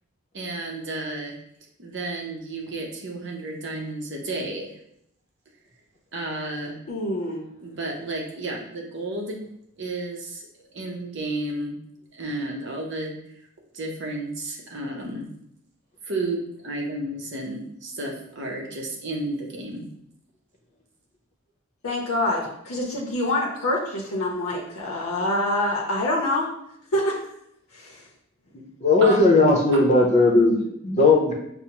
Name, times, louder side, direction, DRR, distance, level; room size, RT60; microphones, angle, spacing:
voice 1, 0.3-1.3 1.8-4.7 6.1-6.8 7.6-9.4 9.8-10.4 10.7-11.8 12.1-13.2 13.7-15.3 16.0-19.9 29.0-29.2 29.7-29.8, right 2 dB, 55° right, 0 dB, 0.7 m, -32 dB
voice 2, 6.9-7.4 21.8-26.5 26.9-27.2 27.7-28.0, left 1 dB, 80° left, -2 dB, 0.6 m, -26 dB
voice 3, 28.8-31.3, left 2 dB, 30° left, -1 dB, 0.6 m, -17 dB
4.8 x 2.0 x 2.9 m, 0.75 s
head